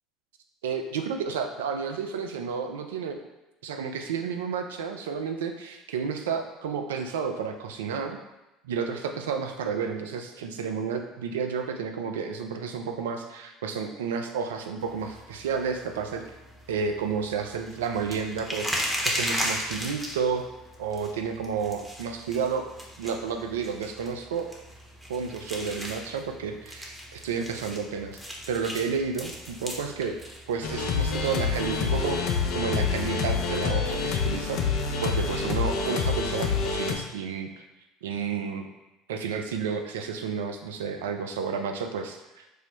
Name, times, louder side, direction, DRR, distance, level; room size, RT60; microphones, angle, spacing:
voice 1, 0.6-3.2 3.6-8.2 8.6-16.3 16.7-20.4 20.8-22.6 23.0-24.5 25.1-30.2 30.5-32.2 32.5-34.6 35.0-37.6 38.0-38.7 39.1-42.4, right 6 dB, 80° right, 5 dB, 0.3 m, -31 dB
sound 1, 14.8-33.3, equal, 5° right, 0.8 m, -37 dB
sound 2, 30.6-37.0, left 5 dB, 65° left, 0.5 m, -27 dB
4.7 x 2.0 x 2.8 m, 0.98 s
hypercardioid pair, 70°, 0 cm